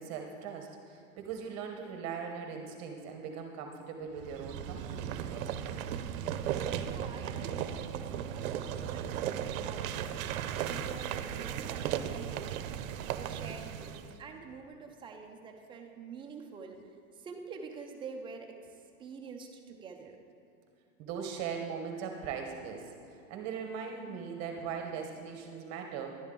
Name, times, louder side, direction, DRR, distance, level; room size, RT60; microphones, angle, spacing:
voice 1, 0.0-5.1 21.0-22.9 23.3-26.1, right 6 dB, 35° right, 4 dB, 1.0 m, -39 dB
sound 1, 4.2-14.2, right 9 dB, 65° right, 0.7 m, -36 dB
voice 2, 6.8-12.7 13.1-20.2, right 5 dB, 10° right, 2 dB, 0.4 m, -47 dB
11.0 x 10.5 x 3.7 m, 2.7 s
supercardioid pair, 135°, 43 cm